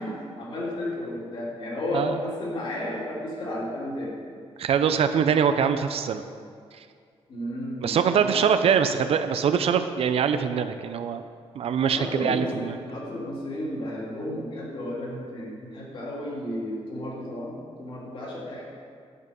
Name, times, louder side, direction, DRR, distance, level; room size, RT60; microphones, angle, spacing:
voice 1, 0.0-4.2 7.3-8.5 11.9-18.6, left 1 dB, 50° left, -5 dB, 3.0 m, -33 dB
voice 2, 4.6-6.2 7.8-11.2 11.6-12.8, right 7 dB, 65° right, 9 dB, 0.5 m, -23 dB
9.6 x 8.3 x 5.2 m, 2.2 s
wide cardioid pair, 155°, 11 cm